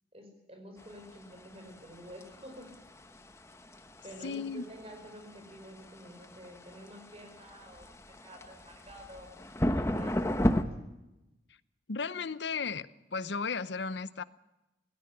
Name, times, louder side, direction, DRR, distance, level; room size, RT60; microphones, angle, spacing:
voice 1, 0.1-2.7 4.0-10.7, equal, 30° right, 4 dB, 5.2 m, -50 dB
sound 1, 0.8-10.6, equal, 15° left, 1.0 m, -34 dB
voice 2, 4.2-4.6 11.9-12.9 13.1-14.2, left 5 dB, 75° left, 16 dB, 0.8 m, -34 dB
17.5 x 17.0 x 10.0 m, 0.99 s
head